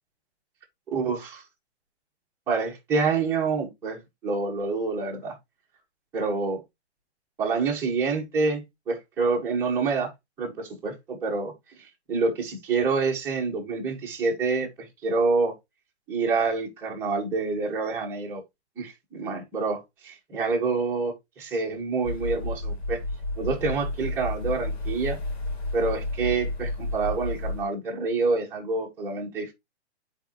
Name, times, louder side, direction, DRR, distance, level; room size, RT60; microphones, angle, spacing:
voice 1, 0.9-1.4 2.5-5.3 6.1-6.6 7.4-10.1 10.4-11.5 11.8-15.5 16.1-18.4 18.8-23.0 23.4-25.2 25.7-29.5, right 4 dB, 5° right, 1.5 m, -27 dB
sound 1, 22.0-27.6, left 2 dB, 65° left, 3.3 m, -31 dB
10.5 x 4.4 x 3.0 m
hypercardioid pair, 175°, 34 cm